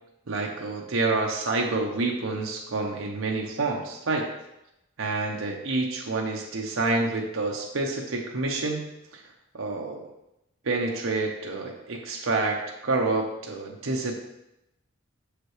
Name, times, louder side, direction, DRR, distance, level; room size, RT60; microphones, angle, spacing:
voice 1, 0.3-4.3 5.0-8.8 9.1-9.2 9.5-10.1 10.6-14.1, right 3 dB, 75° right, 0 dB, 0.8 m, -28 dB
6.5 x 5.0 x 3.1 m, 0.87 s
head